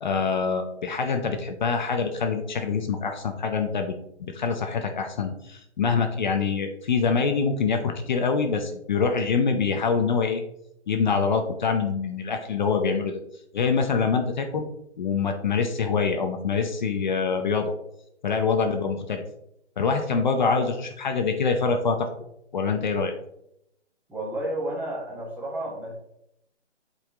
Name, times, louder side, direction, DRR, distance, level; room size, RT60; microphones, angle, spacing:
voice 1, 0.0-3.9 4.2-10.4 10.9-13.2 13.5-14.7 15.0-17.7 18.2-19.2 19.8-22.1 22.5-23.1, left 5 dB, 40° left, 5 dB, 0.7 m, -25 dB
voice 2, 24.1-25.9, right 1 dB, 5° right, -4 dB, 1.4 m, -31 dB
8.1 x 4.3 x 3.6 m, 0.77 s
hypercardioid pair, 150°, 35 cm